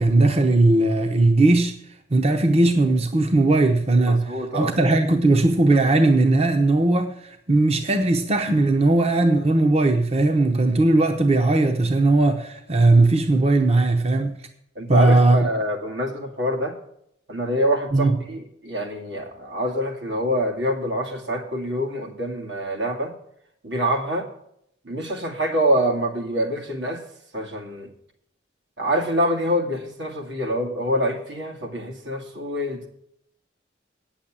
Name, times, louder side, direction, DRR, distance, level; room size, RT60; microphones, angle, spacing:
voice 1, 0.0-1.7 2.1-14.4 14.9-15.5 17.9-18.2, right 2 dB, 35° right, 0.8 m, -18 dB
voice 2, 4.1-4.8 14.8-16.7 17.3-23.1 23.6-24.3 24.8-27.0 27.3-27.9 28.8-32.9, equal, 85° right, 2.2 m, -25 dB
9.1 x 7.2 x 8.7 m
head